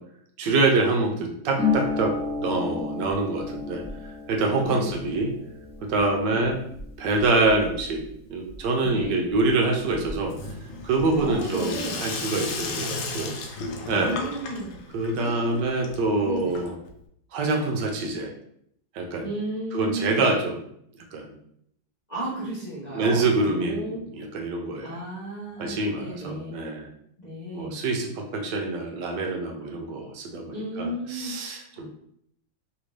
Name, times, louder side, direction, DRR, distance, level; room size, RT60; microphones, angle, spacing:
voice 1, 0.4-3.8 4.3-5.3 5.8-6.6 7.0-8.0 8.3-10.3 10.8-13.3 13.9-14.2 14.9-16.7 17.3-18.3 18.9-19.3 19.7-20.6 21.1-21.3 22.9-25.0 25.6-26.9 27.5-31.9, right 3 dB, 75° right, 1 dB, 1.2 m, -25 dB
Harp, 1.5-9.0 9.3-10.4 10.7-11.3, left 4 dB, 5° left, 0.8 m, -33 dB
voice 2, 4.6-5.2 6.3-6.5 8.8-9.2 11.2-12.0 13.9-14.7 15.2-15.6 16.2-16.6 19.2-20.2 22.1-24.0 24.8-26.6 27.2-27.7 30.5-31.3 31.7-31.9, right 1 dB, 65° left, -8 dB, 0.4 m, -34 dB
Sink (filling or washing), 10.2-17.0, left 3 dB, 85° left, 1.4 m, -35 dB
3.4 x 2.6 x 3.1 m, 0.71 s
omnidirectional pair, 2.1 m